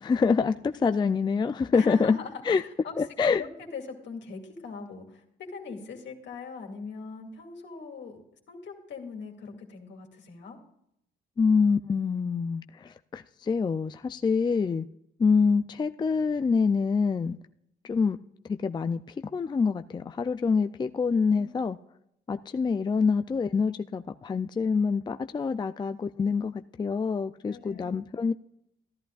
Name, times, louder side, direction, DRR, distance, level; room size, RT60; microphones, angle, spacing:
voice 1, 0.0-2.2 2.5-2.6 3.0-3.4 11.4-14.8 15.2-17.4 17.8-18.2 18.4-19.0 19.3-21.8 22.3-28.3, left 5 dB, 20° left, 9 dB, 0.4 m, -26 dB
voice 2, 1.7-3.0 3.3-8.2 8.5-10.6 21.3-21.5 27.5-27.9, left 5 dB, 65° left, 2 dB, 2.3 m, -41 dB
14.5 x 11.0 x 2.4 m, 0.77 s
cardioid pair, 90°, 20 cm